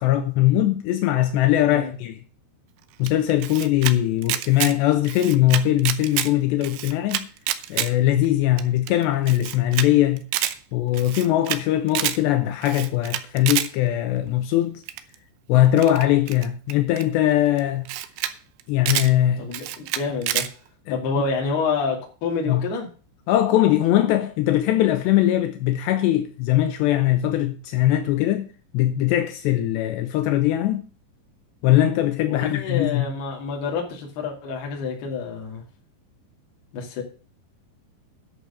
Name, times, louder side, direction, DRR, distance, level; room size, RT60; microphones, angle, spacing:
voice 1, 0.0-2.2 3.0-7.3 7.7-10.2 10.7-14.8 15.5-17.9 18.7-19.4 20.9-21.0 22.5-22.6 23.3-28.5 28.7-30.9 31.6-33.1, left 13 dB, 80° left, 3.0 m, -21 dB
Camera, 3.1-3.9 4.2-4.7 5.0-6.3 6.6-7.9 8.2-8.3 8.6-8.7 8.9-9.0 9.3-9.9 10.2-10.5 10.9-11.6 11.9-12.2 12.6-13.7 14.9-15.2 15.8-17.0 17.6-17.7 17.9-18.3 18.6-19.1 19.5-20.5, right 13 dB, 80° right, 2.9 m, -27 dB
voice 2, 19.4-20.4 20.9-22.9 32.3-35.6 36.7-37.0, left 4 dB, 65° left, 4.3 m, -28 dB
11.0 x 6.5 x 6.9 m
omnidirectional pair, 5.2 m